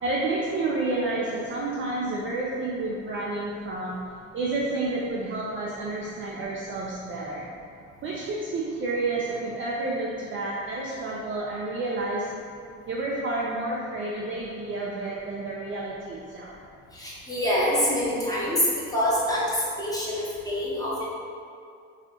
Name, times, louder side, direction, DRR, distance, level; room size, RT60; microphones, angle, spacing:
voice 1, 0.0-4.0 4.3-7.5 8.0-12.4 12.9-16.6, right 2 dB, 30° right, -4 dB, 0.4 m, -30 dB
voice 2, 16.9-18.6 18.9-21.1, equal, 10° left, -8 dB, 0.9 m, -26 dB
2.6 x 2.4 x 2.7 m, 2.4 s
hypercardioid pair, 65°, 41 cm